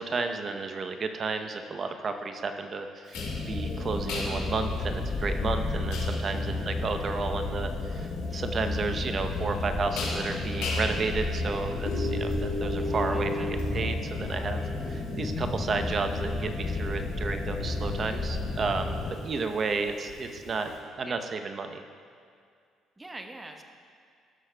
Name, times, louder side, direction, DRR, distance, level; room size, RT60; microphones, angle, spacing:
voice 1, 0.0-14.6 14.9-21.8, right 4 dB, 45° right, 6 dB, 0.7 m, -32 dB
sound 1, 3.1-20.8, left 1 dB, 85° left, 2.2 m, -38 dB
sound 2, 3.1-19.1, left 3 dB, 40° left, 1.1 m, -32 dB
voice 2, 6.2-7.0 12.7-13.6 21.0-21.2 23.0-23.6, right 2 dB, 20° right, 4 dB, 0.9 m, -45 dB
16.5 x 6.5 x 2.2 m, 2.2 s
supercardioid pair, 70°, 0 cm